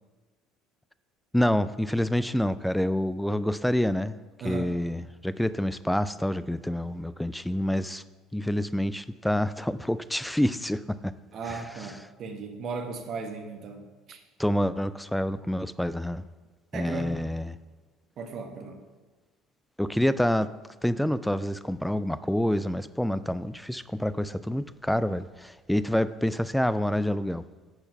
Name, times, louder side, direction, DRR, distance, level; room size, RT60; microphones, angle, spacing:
voice 1, 1.3-4.2 4.4-8.0 8.3-11.1 14.4-16.2 16.7-17.5 19.8-20.5 20.8-27.4, left 1 dB, 5° left, 14 dB, 0.3 m, -27 dB
voice 2, 4.4-4.7 11.3-14.2 16.7-17.2 18.2-18.8, right 4 dB, 45° right, 4 dB, 1.1 m, -36 dB
9.6 x 4.5 x 5.4 m, 1.3 s
figure-of-eight pair, 60°, 0 cm